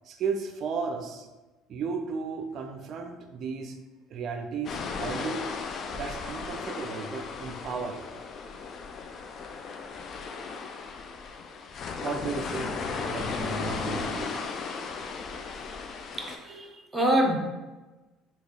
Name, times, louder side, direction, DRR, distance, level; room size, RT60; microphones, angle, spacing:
voice 1, 0.0-1.3 1.7-3.8 4.1-5.4 5.9-8.1 12.0-14.3, right 5 dB, 55° right, 5 dB, 0.4 m, -34 dB
sound 1, 4.6-16.4, left 5 dB, 50° left, 0.4 m, -36 dB
voice 2, 16.2-17.4, right 1 dB, 15° right, 0 dB, 0.8 m, -26 dB
3.2 x 2.4 x 3.7 m, 1.1 s
hypercardioid pair, 70°, 0 cm